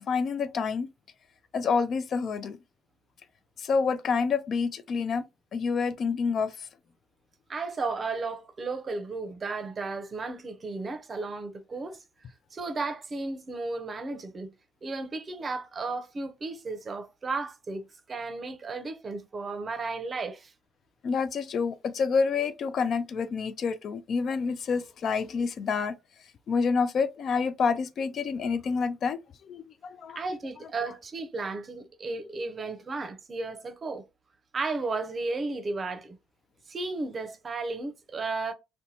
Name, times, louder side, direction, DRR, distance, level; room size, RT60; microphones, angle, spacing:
voice 1, 0.1-0.9 1.5-2.6 3.6-5.2 5.5-6.5 21.0-25.9 26.5-29.2 29.5-30.2, left 5 dB, 55° left, 0.3 m, -28 dB
voice 2, 7.5-12.0 12.5-14.5 14.8-20.5 30.1-34.1 34.5-36.2 36.7-38.5, right 3 dB, 35° right, 0.6 m, -34 dB
2.7 x 2.1 x 2.7 m
supercardioid pair, 75°, 0 cm